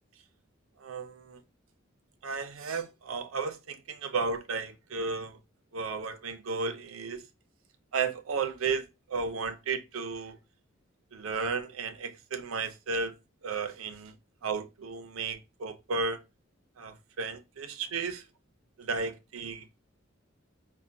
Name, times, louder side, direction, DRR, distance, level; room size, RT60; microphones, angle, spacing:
voice 1, 0.8-1.4 2.2-5.4 5.7-7.3 7.9-10.4 11.1-13.1 13.4-14.1 14.4-16.2 16.8-18.2 18.8-19.7, right 4 dB, 90° right, 0.5 m, -34 dB
5.4 x 2.1 x 2.5 m
head